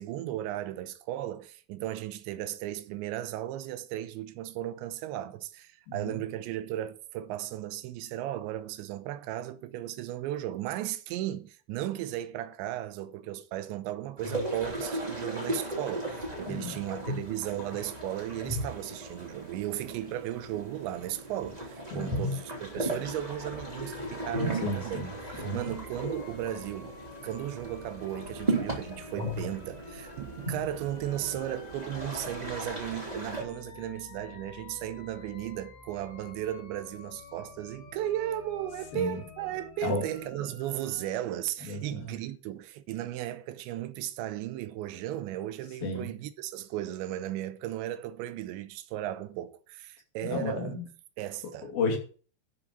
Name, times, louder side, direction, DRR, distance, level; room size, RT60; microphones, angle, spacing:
voice 1, 0.0-50.8 51.2-51.7, right 13 dB, 85° right, 3.1 m, -36 dB
voice 2, 5.9-6.2 16.5-16.7 21.9-22.2 24.6-25.1 25.4-25.6 38.9-39.2 39.8-40.1 41.6-42.2 45.8-46.1 50.2-50.9 51.6-52.0, left 3 dB, 55° left, 4.2 m, -32 dB
sound 1, 14.2-33.4, right 1 dB, 10° right, 2.6 m, -36 dB
sound 2, 22.7-41.2, left 6 dB, 75° left, 4.5 m, -50 dB
12.0 x 6.3 x 7.0 m
omnidirectional pair, 5.3 m